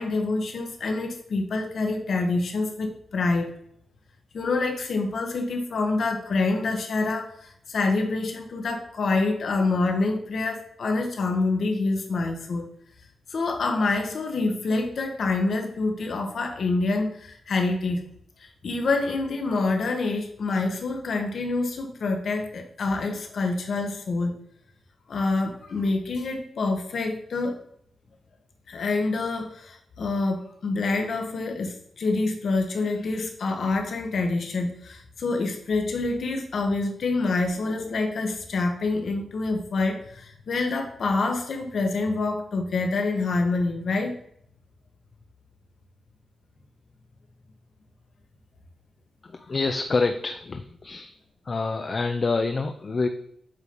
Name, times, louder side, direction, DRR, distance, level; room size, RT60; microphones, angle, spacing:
voice 1, 0.0-3.5 4.3-12.7 13.3-18.0 18.4-24.4 25.1-27.5 28.7-44.1, left 3 dB, 70° left, 3 dB, 1.2 m, -26 dB
voice 2, 49.2-51.1 51.5-53.1, left 3 dB, 40° left, 6 dB, 0.5 m, -27 dB
8.1 x 2.8 x 5.3 m, 0.70 s
wide cardioid pair, 100°, 0 cm